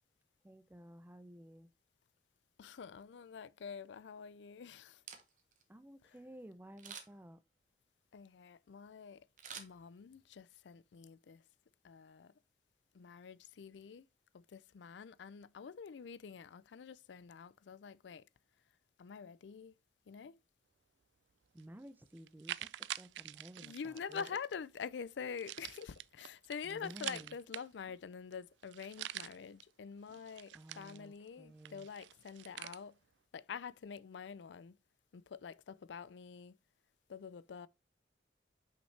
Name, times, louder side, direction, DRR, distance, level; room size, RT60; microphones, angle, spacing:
voice 1, 0.4-1.7 5.7-7.4 21.5-24.3 26.6-27.4 30.3-31.9, equal, 10° right, 0.4 m, -54 dB
voice 2, 2.6-5.0 8.1-9.2 9.6-11.4 11.8-12.3 12.9-14.1 14.3-18.2 19.0-19.7 20.1-20.4 23.6-33.0 33.3-34.8 35.1-36.5 37.1-37.7, left 6 dB, 85° left, 0.4 m, -46 dB
Camera, 4.9-5.6 6.8-7.3 9.4-10.3 10.7-10.8, right 7 dB, 45° right, 1.1 m, -50 dB
sound 1, 21.6-21.7 22.2-24.5 25.4-28.0 28.3-28.4 28.6-29.6 30.1-31.3 31.6-32.8, right 13 dB, 85° right, 0.3 m, -46 dB
5.9 x 5.4 x 3.3 m
head